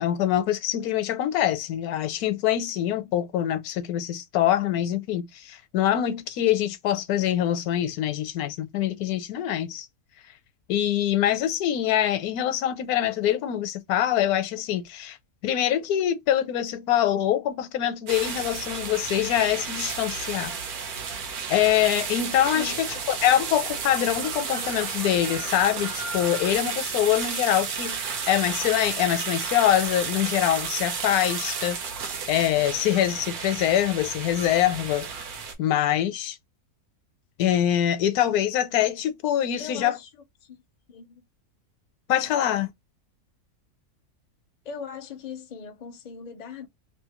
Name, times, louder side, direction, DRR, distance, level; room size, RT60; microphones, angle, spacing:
voice 1, 0.0-9.9 10.7-15.2 15.4-20.5 21.5-31.8 32.3-35.1 35.6-36.4 37.4-40.0 42.1-42.7, left 11 dB, 85° left, 1.1 m, -24 dB
sound 1, 18.1-35.5, right 5 dB, 80° right, 1.3 m, -32 dB
voice 2, 39.6-40.1 40.4-40.6 40.9-41.3 44.6-46.7, left 6 dB, 50° left, 0.5 m, -39 dB
3.0 x 2.6 x 2.9 m
omnidirectional pair, 1.6 m